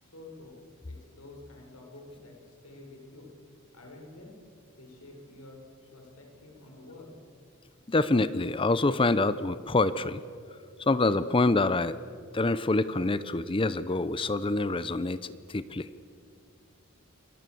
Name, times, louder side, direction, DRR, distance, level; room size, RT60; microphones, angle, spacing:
voice 1, 0.0-3.3 3.7-4.3 4.7-5.6 5.9-7.2, left 2 dB, 80° left, 1 dB, 5.8 m, -49 dB
voice 2, 7.9-10.2 10.8-12.0 12.3-15.2 15.5-15.9, left 2 dB, 25° left, 15 dB, 0.5 m, -26 dB
27.5 x 21.0 x 7.7 m, 2.3 s
head